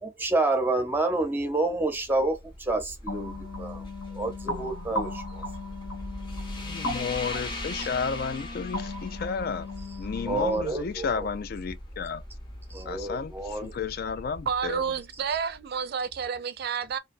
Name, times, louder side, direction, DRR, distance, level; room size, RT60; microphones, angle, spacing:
voice 1, 0.0-3.8 4.1-5.4 10.3-11.3 12.7-13.7, right 2 dB, 10° right, 0.6 m, -28 dB
sound 1, 1.6-15.8, left 1 dB, 25° left, 0.8 m, -41 dB
sound 2, 3.1-10.6, left 2 dB, 75° left, 1.1 m, -37 dB
voice 2, 6.6-9.7 10.0-12.2 12.9-14.8, left 6 dB, 50° left, 0.3 m, -32 dB
voice 3, 14.5-17.0, right 6 dB, 55° right, 0.3 m, -30 dB
2.6 x 2.2 x 2.5 m
head